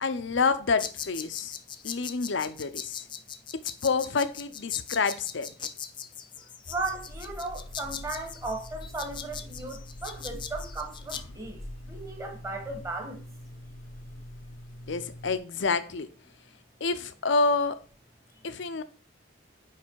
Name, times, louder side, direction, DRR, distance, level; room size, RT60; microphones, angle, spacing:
voice 1, 0.0-1.5 1.8-3.0 3.8-5.5 14.9-16.1 16.8-17.8 18.4-18.8, left 4 dB, 70° left, 0.6 m, -28 dB
sound 1, 0.8-11.2, left 8 dB, 25° left, 0.4 m, -40 dB
voice 2, 6.4-13.2, right 2 dB, 15° right, 1.3 m, -36 dB
sound 2, 6.6-15.4, left 1 dB, 90° left, 0.9 m, -44 dB
9.4 x 3.3 x 4.6 m
head